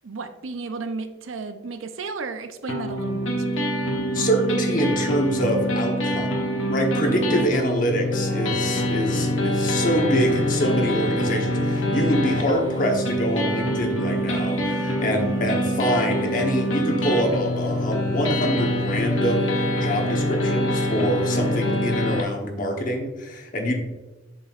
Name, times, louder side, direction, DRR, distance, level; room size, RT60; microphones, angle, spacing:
voice 1, 0.0-3.7, right 4 dB, 85° right, 8 dB, 0.6 m, -33 dB
sound 1, 2.7-22.2, equal, 85° left, 1.0 m, -25 dB
voice 2, 4.1-6.3 6.7-23.8, equal, 45° left, 2 dB, 1.1 m, -25 dB
sound 2, 8.2-21.9, right 1 dB, 20° right, 0.9 m, -40 dB
sound 3, 8.7-14.8, equal, 50° right, 1.7 m, -42 dB
7.6 x 6.1 x 2.5 m, 1.1 s
head